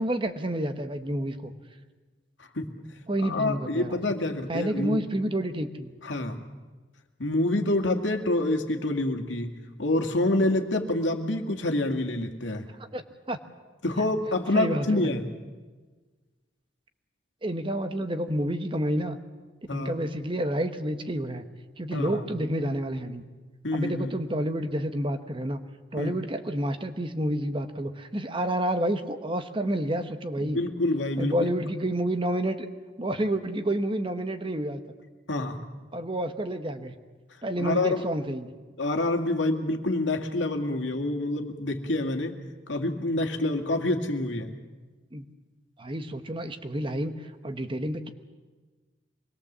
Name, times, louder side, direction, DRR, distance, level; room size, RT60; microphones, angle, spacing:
voice 1, 0.0-1.5 3.1-4.0 4.5-5.9 12.8-13.4 14.5-15.2 17.4-19.2 19.7-21.4 21.8-23.2 23.7-25.6 25.9-30.6 31.2-32.7 33.0-34.8 35.9-36.9 37.4-38.5 45.1-45.2 45.8-48.1, right 1 dB, 30° right, 8 dB, 1.1 m, -29 dB
voice 2, 3.2-5.0 6.0-6.4 7.2-9.5 9.8-12.7 13.8-15.3 19.7-19.9 21.9-22.2 23.6-24.1 26.0-26.2 30.4-31.5 35.3-35.6 37.6-38.0 38.8-42.3 42.7-44.5, left 2 dB, 85° left, 4 dB, 2.2 m, -27 dB
25.0 x 20.5 x 7.4 m, 1.3 s
head